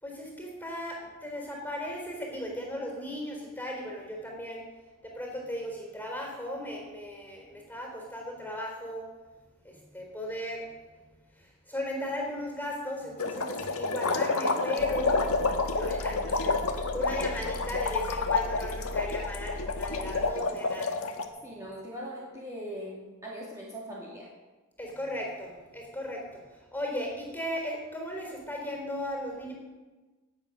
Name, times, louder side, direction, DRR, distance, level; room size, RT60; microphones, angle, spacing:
voice 1, 0.0-4.7 5.0-9.1 9.6-10.7 11.4-15.2 15.7-20.9 24.8-26.4 26.7-29.5, equal, 10° left, 0 dB, 3.9 m, -36 dB
sound 1, 13.2-21.3, left 3 dB, 80° left, 1.3 m, -29 dB
sound 2, 14.8-20.3, left 1 dB, 50° left, 0.7 m, -40 dB
voice 2, 21.4-24.3, equal, 15° right, -6 dB, 2.4 m, -40 dB
18.0 x 8.0 x 6.3 m, 1.2 s
head